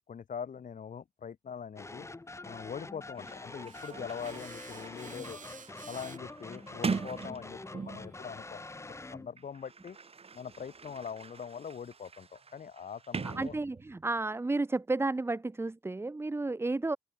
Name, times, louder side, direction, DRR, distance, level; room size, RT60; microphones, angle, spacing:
voice 1, 0.0-2.1 2.4-5.4 5.8-8.6 8.9-10.0 10.3-13.6, left 7 dB, 75° left, 2.2 m, -42 dB
sound 1, 1.8-9.3, left 2 dB, 20° left, 0.9 m, -46 dB
Sliding door, 2.8-2.9 3.1-8.2 9.1-14.1, right 5 dB, 50° right, 1.6 m, -41 dB
sound 2, 3.5-8.7, right 6 dB, 75° right, 6.5 m, -54 dB
voice 2, 13.2-17.0, right 2 dB, 20° right, 0.6 m, -32 dB
wide cardioid pair, 100°, 13 cm